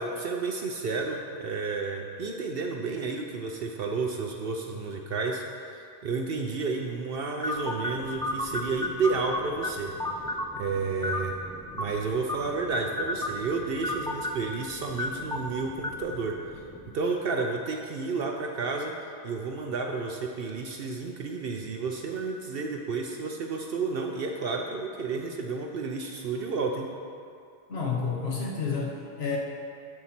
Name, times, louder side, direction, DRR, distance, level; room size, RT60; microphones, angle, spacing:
voice 1, 0.0-9.9 10.6-11.3 11.7-16.6 16.9-18.9 19.2-26.9, right 4 dB, 65° right, 2 dB, 0.8 m, -31 dB
sound 1, 7.4-16.9, left 1 dB, 5° left, 0.4 m, -34 dB
voice 2, 27.7-29.4, left 5 dB, 70° left, -2 dB, 1.2 m, -30 dB
12.5 x 4.2 x 5.9 m, 2.5 s
omnidirectional pair, 1.1 m